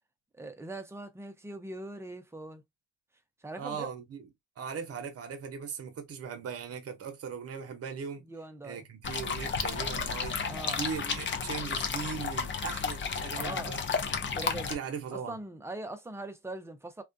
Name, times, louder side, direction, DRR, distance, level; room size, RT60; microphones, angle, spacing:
voice 1, 0.3-2.6 3.4-3.9 8.2-8.8 10.4-10.8 13.3-13.8 14.3-14.7 15.1-17.0, right 2 dB, 10° right, 0.6 m, -41 dB
voice 2, 3.6-4.3 4.6-8.2 8.6-13.8 14.7-15.4, right 6 dB, 50° right, 0.8 m, -39 dB
sound 1, 9.0-14.7, left 5 dB, 40° left, 0.6 m, -32 dB
2.4 x 2.2 x 2.5 m
cardioid pair, 90°, 30 cm